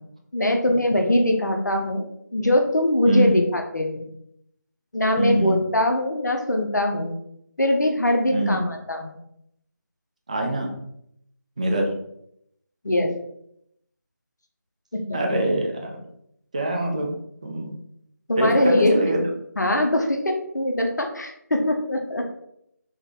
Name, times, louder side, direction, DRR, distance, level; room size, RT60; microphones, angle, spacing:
voice 1, 0.3-2.0 2.3-4.1 4.9-7.1 7.6-9.2 12.8-13.1 14.9-15.2 18.3-19.0 19.6-22.2, left 1 dB, 70° left, 3 dB, 0.7 m, -22 dB
voice 2, 3.1-3.4 5.2-5.6 8.3-8.6 10.3-10.7 11.6-11.9 15.1-16.0 16.5-17.2 17.4-17.7 18.4-19.2, right 1 dB, 20° right, 1 dB, 0.4 m, -23 dB
3.9 x 2.2 x 3.8 m, 0.74 s
figure-of-eight pair, 165°, 10 cm